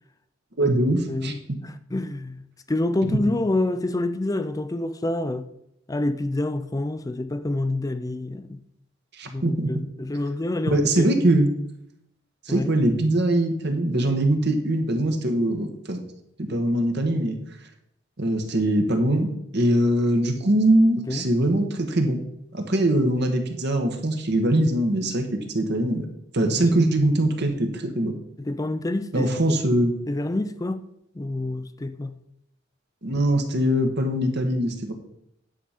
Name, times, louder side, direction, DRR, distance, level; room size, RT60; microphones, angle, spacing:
voice 1, 0.6-1.3 3.0-3.1 9.2-9.7 10.7-11.5 12.5-16.0 16.4-17.4 18.2-22.2 22.5-26.1 26.3-28.2 29.1-29.9 33.0-34.9, right 1 dB, 60° right, 1.4 m, -22 dB
voice 2, 1.1-2.4 2.7-5.5 5.9-8.6 9.3-11.2 12.5-12.7 21.1-21.3 26.4-26.7 28.4-29.4 30.1-30.9 31.2-32.2, left 2 dB, 20° left, 0.4 m, -27 dB
10.0 x 5.7 x 5.1 m
head